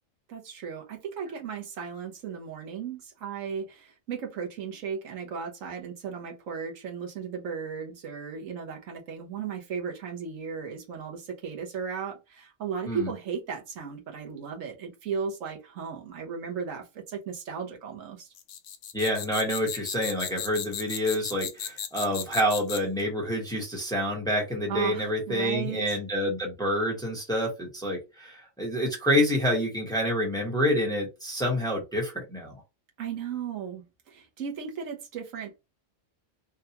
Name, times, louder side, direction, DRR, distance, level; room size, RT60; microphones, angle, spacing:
voice 1, 0.3-18.3 24.7-25.8 33.0-35.6, right 6 dB, 90° right, 1.3 m, -35 dB
sound 1, 18.4-23.0, left 9 dB, 70° left, 0.9 m, -35 dB
voice 2, 18.9-32.5, equal, 5° left, 0.9 m, -28 dB
3.5 x 2.3 x 2.8 m
omnidirectional pair, 1.3 m